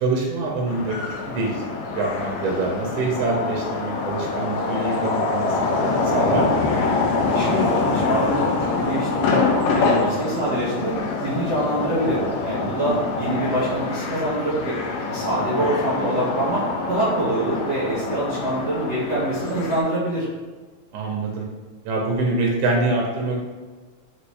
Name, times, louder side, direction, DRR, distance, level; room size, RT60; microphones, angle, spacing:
voice 1, 0.0-1.0 1.2-1.7 1.9-6.7 12.8-13.0 15.6-15.7 20.9-21.5 21.9-23.4, right 3 dB, 80° right, -1 dB, 2.1 m, -25 dB
sound 1, 0.7-19.8, left 4 dB, 75° left, 1.9 m, -25 dB
voice 2, 7.2-10.9 11.2-14.8 15.1-16.6 16.9-20.3, right 1 dB, 40° right, -12 dB, 0.9 m, -25 dB
5.2 x 3.1 x 3.2 m, 1.4 s
omnidirectional pair, 3.5 m